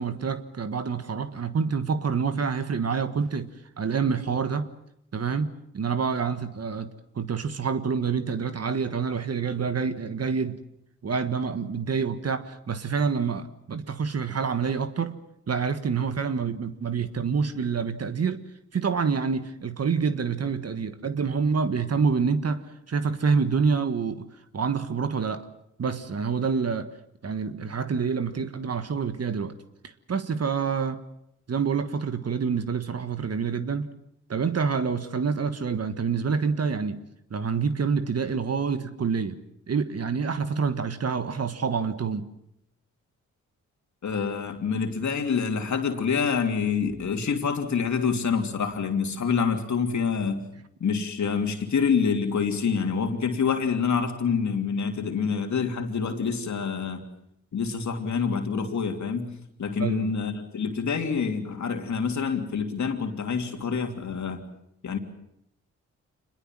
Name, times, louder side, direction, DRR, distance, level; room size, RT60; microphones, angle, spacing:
voice 1, 0.0-3.5 3.8-4.7 5.1-10.6 11.0-15.2 15.5-18.4 18.7-24.2 24.5-25.5 25.8-26.9 27.2-29.6 29.8-31.0 31.5-33.9 34.3-37.0 37.3-39.4 39.7-42.3 59.8-60.1, right 5 dB, 55° right, 1.6 m, -27 dB
voice 2, 44.0-50.4 50.8-57.0 57.5-59.3 59.6-64.4 64.8-65.0, left 6 dB, 70° left, 3.1 m, -26 dB
26.0 x 21.5 x 7.6 m
cardioid pair, 65°, 30 cm